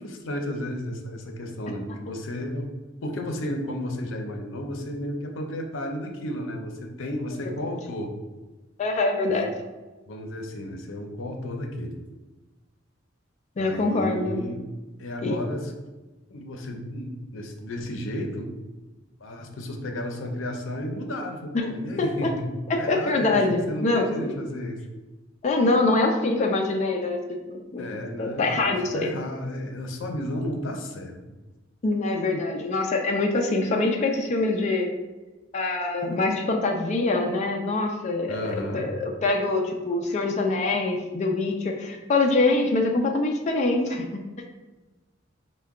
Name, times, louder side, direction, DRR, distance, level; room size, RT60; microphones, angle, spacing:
voice 1, 0.0-2.7 3.0-8.1 10.1-11.9 13.6-14.7 15.0-15.7 16.3-18.5 19.2-22.5 22.8-23.4 23.7-24.8 27.8-31.3 38.3-38.9, left 1 dB, 85° left, 3 dB, 0.6 m, -33 dB
voice 2, 8.8-9.5 13.6-14.4 15.2-15.4 21.5-21.6 22.0-22.1 22.9-24.3 25.4-27.2 27.5-29.1 31.8-34.9 35.5-44.0, left 2 dB, 40° left, 2 dB, 0.4 m, -24 dB
4.5 x 2.2 x 3.5 m, 1.2 s
head